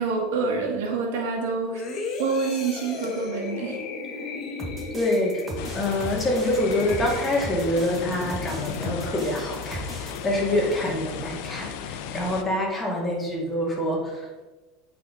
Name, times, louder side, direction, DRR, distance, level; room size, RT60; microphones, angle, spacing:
voice 1, 0.0-1.8 2.2-3.8, right 4 dB, 80° right, -1 dB, 1.6 m, -27 dB
sound 1, 1.7-7.8 8.3-8.4, left 4 dB, 40° left, 1.1 m, -36 dB
sound 2, 4.6-10.2, right 2 dB, 20° right, 1.1 m, -37 dB
voice 2, 4.9-5.4 5.7-14.4, left 1 dB, 10° left, -3 dB, 2.0 m, -26 dB
sound 3, 5.6-12.4, left 8 dB, 65° left, 0.6 m, -35 dB
8.4 x 4.1 x 3.9 m, 1.2 s
supercardioid pair, 125°, 0 cm